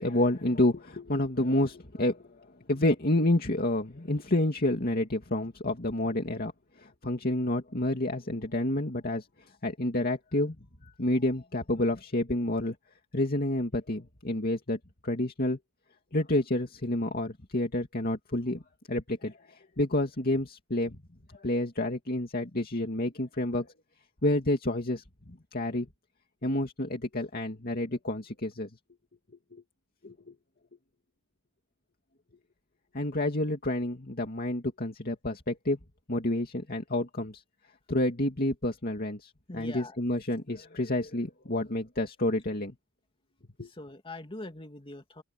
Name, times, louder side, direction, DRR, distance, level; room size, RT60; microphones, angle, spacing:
voice 1, 0.0-2.3 2.7-6.5 6.8-9.3 9.6-10.6 11.0-12.7 13.1-15.6 16.1-18.6 18.9-21.0 21.3-23.7 24.2-25.9 26.4-28.7 29.5-29.6 30.0-30.3 32.9-35.8 36.1-37.4 37.9-42.7 43.6-43.7, left 1 dB, 45° left, 2.5 m, -29 dB
voice 2, 39.5-40.0 43.6-45.2, left 2 dB, 25° left, 2.7 m, -43 dB
open air
head